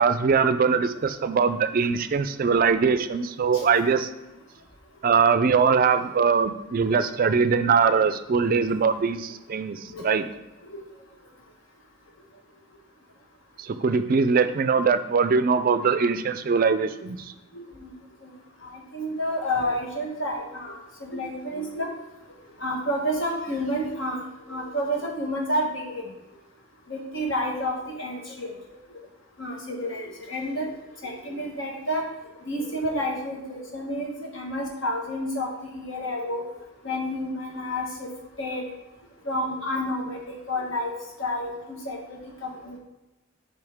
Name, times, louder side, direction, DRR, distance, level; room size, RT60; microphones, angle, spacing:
voice 1, 0.0-4.1 5.0-10.3 13.7-17.2, right 5 dB, 45° right, 11 dB, 0.4 m, -22 dB
voice 2, 17.5-17.9 18.6-21.9 22.6-24.2 24.5-26.0 26.9-28.5 29.4-30.7 31.0-32.0 32.5-36.4 36.8-38.1 38.4-38.6 39.2-40.9 41.2-42.8, equal, 65° left, 0 dB, 1.4 m, -30 dB
7.1 x 5.1 x 3.5 m, 0.99 s
head